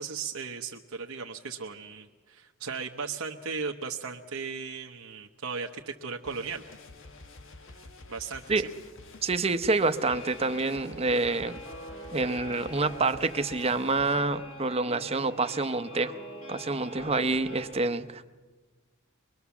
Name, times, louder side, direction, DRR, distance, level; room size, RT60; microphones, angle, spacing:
voice 1, 0.0-6.6 8.1-8.7, right 5 dB, 90° right, 3 dB, 1.0 m, -36 dB
sound 1, 6.2-14.2, left 3 dB, 65° left, 1.4 m, -49 dB
voice 2, 9.2-11.6 12.1-16.1 16.5-18.3, right 3 dB, 30° right, 10 dB, 0.8 m, -27 dB
sound 2, 9.9-17.7, right 1 dB, 90° left, 6.0 m, -44 dB
23.5 x 22.0 x 7.1 m, 1.4 s
head